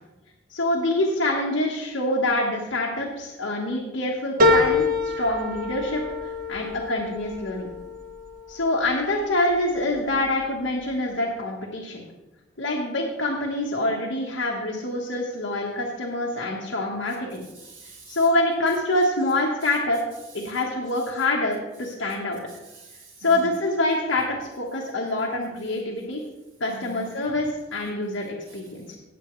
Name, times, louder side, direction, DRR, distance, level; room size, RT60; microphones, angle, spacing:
voice 1, 0.5-7.7 8.5-12.0 12.6-17.4 18.1-20.0 20.3-22.4 23.2-26.2 26.6-29.0, left 1 dB, 75° left, -2 dB, 1.5 m, -26 dB
sound 1, 4.4-9.2 9.6-10.3 10.7-10.8, left 2 dB, 45° right, 1.3 m, -25 dB
voice 2, 17.5-18.2 22.5-23.5 26.7-27.4 28.5-28.6, right 2 dB, 90° right, -1 dB, 1.6 m, -45 dB
17.5 x 7.1 x 3.2 m, 1.1 s
head